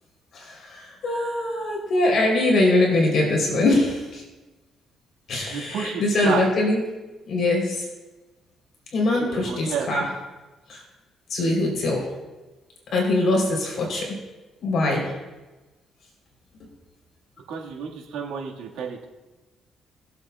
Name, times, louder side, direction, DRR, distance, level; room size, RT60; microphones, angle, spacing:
voice 1, 0.3-4.2 5.3-6.8 7.2-7.7 8.9-10.1 10.7-10.8 11.3-12.1 12.9-14.2 14.6-15.1, left 2 dB, 65° left, 0 dB, 3.2 m, -22 dB
voice 2, 5.5-6.4 9.1-9.9 17.5-19.1, right 6 dB, 90° right, -1 dB, 1.6 m, -31 dB
21.0 x 7.6 x 2.3 m, 1.1 s
cardioid pair, 90°, 0 cm